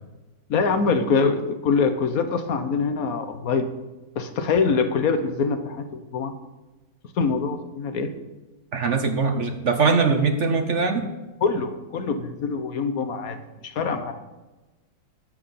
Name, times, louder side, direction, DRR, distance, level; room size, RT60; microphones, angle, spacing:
voice 1, 0.5-3.7 4.2-5.8 6.1-6.3 7.2-8.1 11.4-13.4 13.6-14.1, left 5 dB, 55° left, 8 dB, 1.2 m, -24 dB
voice 2, 8.7-11.1, right 4 dB, 55° right, 6 dB, 0.8 m, -21 dB
12.0 x 7.7 x 5.6 m, 1.1 s
omnidirectional pair, 2.1 m